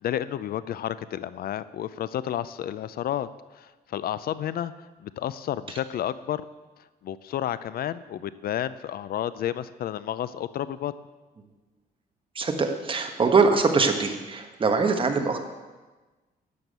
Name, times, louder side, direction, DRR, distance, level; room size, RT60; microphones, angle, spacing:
voice 1, 0.0-3.3 3.5-4.7 5.0-6.4 7.0-10.9, left 11 dB, 65° left, 15 dB, 0.5 m, -31 dB
voice 2, 12.3-15.4, right 4 dB, 30° right, 5 dB, 1.4 m, -23 dB
12.0 x 7.2 x 8.1 m, 1.2 s
cardioid pair, 135°, 17 cm